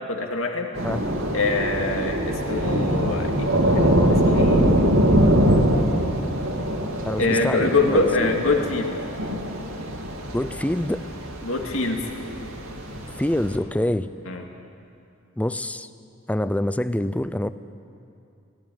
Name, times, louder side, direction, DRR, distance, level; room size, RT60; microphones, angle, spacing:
voice 1, 0.1-0.7 1.3-4.7 7.2-8.9 11.4-12.0 14.3-14.4, left 3 dB, 80° left, 2 dB, 2.3 m, -24 dB
Thunder / Rain, 0.7-13.6, equal, 85° right, 2.6 m, -23 dB
voice 2, 7.0-8.3 10.3-11.0 13.1-14.1 15.4-15.9 16.3-17.5, left 1 dB, 5° left, 13 dB, 0.5 m, -26 dB
18.0 x 16.5 x 9.5 m, 2.5 s
head